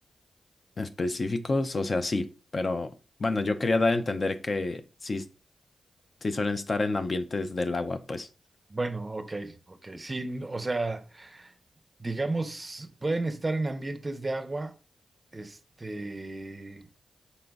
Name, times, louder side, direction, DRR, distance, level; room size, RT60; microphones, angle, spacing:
voice 1, 0.8-2.9 3.2-5.3 6.2-8.3, left 3 dB, 50° left, 0.5 m, -28 dB
voice 2, 8.7-11.5 12.0-14.8 15.3-16.9, right 2 dB, 35° right, 0.6 m, -33 dB
4.0 x 3.8 x 2.3 m
supercardioid pair, 40°, 0 cm